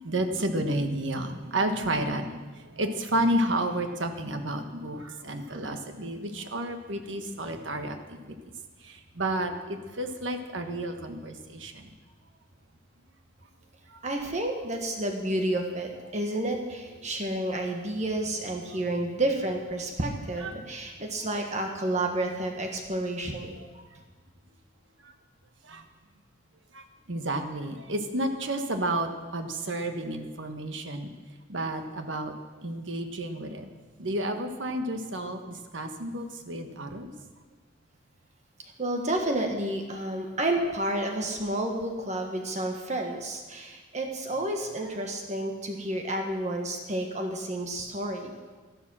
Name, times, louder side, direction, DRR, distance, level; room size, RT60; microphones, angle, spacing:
voice 1, 0.0-2.4 2.7-8.3 9.2-11.9 20.4-20.5 23.6-23.7 25.7-25.8 26.7-26.8 27.1-31.1 31.5-32.3 32.6-33.7 34.0-37.1, right 1 dB, 75° right, 6 dB, 1.4 m, -31 dB
voice 2, 14.0-23.9 38.8-48.3, right 1 dB, 35° right, 2 dB, 1.4 m, -30 dB
13.5 x 12.0 x 6.2 m, 1.4 s
head